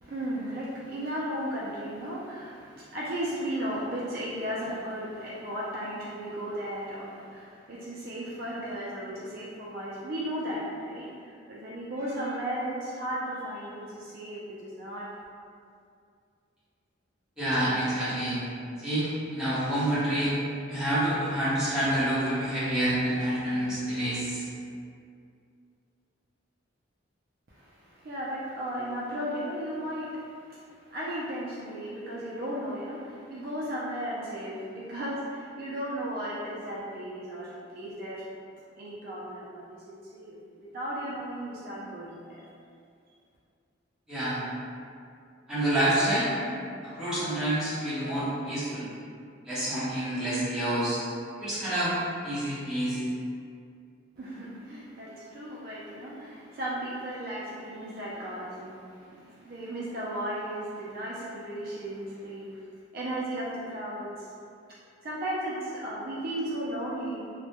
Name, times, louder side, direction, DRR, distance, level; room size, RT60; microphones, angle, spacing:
voice 1, 0.0-15.1 27.5-38.2 38.8-42.4 54.2-62.6 62.9-64.3 65.0-67.2, right 1 dB, 45° right, -6 dB, 0.3 m, -35 dB
voice 2, 17.4-18.4 18.8-20.3 20.7-24.4 44.1-44.4 45.5-46.3 46.8-48.9 49.4-51.0 51.4-51.9 52.2-53.0, right 1 dB, 5° right, -13 dB, 0.7 m, -28 dB
2.1 x 2.0 x 2.8 m, 2.4 s
head